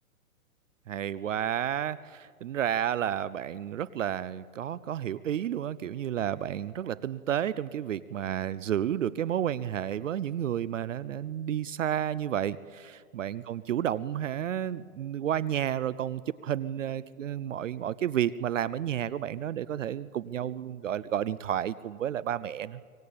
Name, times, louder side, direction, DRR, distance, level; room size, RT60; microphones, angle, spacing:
voice 1, 0.9-22.8, right 10 dB, 60° right, 19 dB, 0.6 m, -31 dB
24.5 x 19.0 x 8.7 m, 2.1 s
hypercardioid pair, 165°, 44 cm